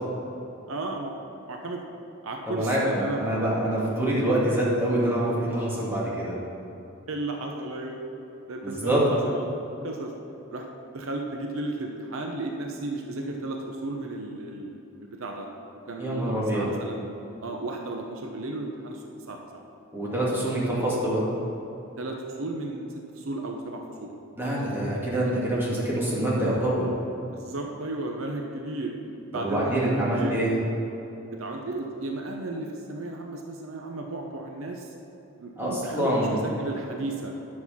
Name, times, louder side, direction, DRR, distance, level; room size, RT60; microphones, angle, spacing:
voice 1, 0.7-1.1 1.5-1.8 2.2-3.2 7.1-8.0 8.5-9.5 9.8-10.1 10.5-10.6 10.9-15.5 15.9-17.1 17.4-19.6 22.0-24.1 27.1-28.9 29.3-30.4 31.3-34.9 35.4-37.3, right 2 dB, 70° right, 2 dB, 0.8 m, -34 dB
voice 2, 2.5-6.4 8.6-9.1 16.0-16.7 19.9-21.2 24.4-26.9 29.3-30.5 35.6-36.4, right 1 dB, 10° right, -7 dB, 2.2 m, -25 dB
9.6 x 6.4 x 5.7 m, 3.0 s
head